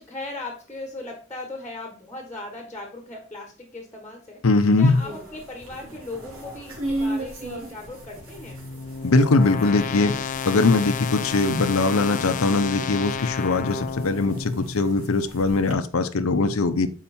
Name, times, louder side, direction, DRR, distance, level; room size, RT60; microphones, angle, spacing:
voice 1, 0.0-4.4 4.8-8.6, left 2 dB, 10° left, 2 dB, 1.4 m, -38 dB
voice 2, 4.4-5.0 9.0-10.1 10.5-16.9, left 3 dB, 80° left, 8 dB, 0.7 m, -21 dB
sound 1, 4.8-15.7, right 1 dB, 85° right, 2.4 m, -37 dB
sound 2, 7.9-15.0, left 6 dB, 35° left, 0.4 m, -32 dB
7.0 x 4.7 x 4.3 m, 0.38 s
head